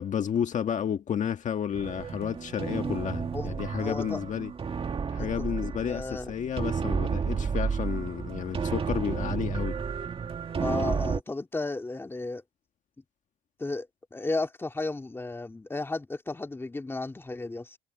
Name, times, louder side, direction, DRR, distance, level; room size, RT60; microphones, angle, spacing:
voice 1, 0.0-4.5 5.1-9.8, left 8 dB, 45° left, 1.7 m, -31 dB
sound 1, 1.7-11.2, right 6 dB, 35° right, 2.2 m, -31 dB
voice 2, 2.6-3.0 3.3-4.2 5.2-6.3 10.6-12.4 13.6-17.8, left 2 dB, 15° left, 2.4 m, -34 dB
cardioid pair, 110°, 17 cm